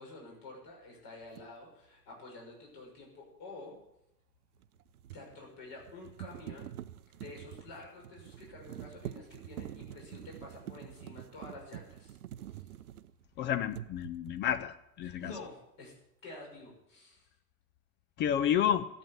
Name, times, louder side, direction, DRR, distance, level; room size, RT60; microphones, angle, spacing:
voice 1, 0.0-3.7 5.1-6.7 7.1-12.2 12.4-12.7 15.0-15.9 16.2-17.3, left 3 dB, 45° left, -1 dB, 6.4 m, -49 dB
sound 1, 1.3-1.5 4.6-13.3 13.7-14.5, right 12 dB, 70° right, 0.7 m, -46 dB
voice 2, 13.4-15.3 18.2-18.9, left 9 dB, 25° left, 13 dB, 0.5 m, -30 dB
13.5 x 8.3 x 9.9 m, 0.82 s
figure-of-eight pair, 80°, 46 cm